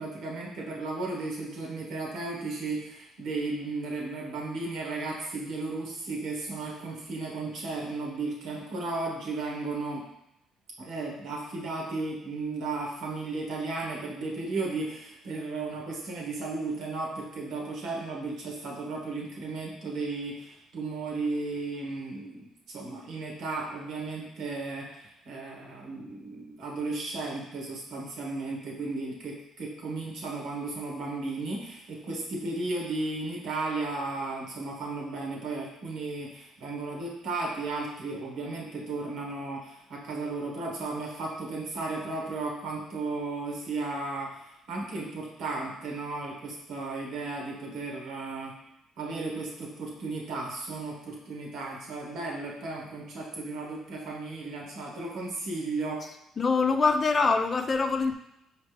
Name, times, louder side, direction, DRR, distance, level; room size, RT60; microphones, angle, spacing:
voice 1, 0.0-10.0 10.8-44.4 44.7-48.5 49.0-56.0, right 3 dB, 70° right, -2 dB, 1.3 m, -34 dB
voice 2, 56.4-58.1, left 4 dB, 40° left, 7 dB, 0.4 m, -24 dB
4.7 x 3.2 x 3.3 m, 0.83 s
supercardioid pair, 75°, 0 cm